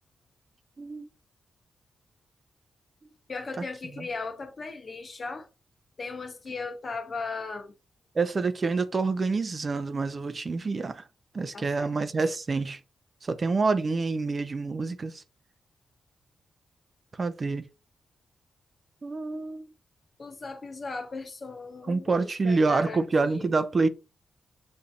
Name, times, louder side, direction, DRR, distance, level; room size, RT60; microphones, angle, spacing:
voice 1, 0.8-1.1 4.0-4.1 8.2-11.0 11.3-12.8 13.2-15.2 17.2-17.7 19.0-19.7 21.9-23.9, right 3 dB, 45° right, 0.6 m, -27 dB
voice 2, 3.3-5.5 6.0-7.7 11.5-11.9 20.2-23.0 23.3-23.5, left 4 dB, 50° left, 0.9 m, -37 dB
6.9 x 2.7 x 2.4 m
supercardioid pair, 55°, 0 cm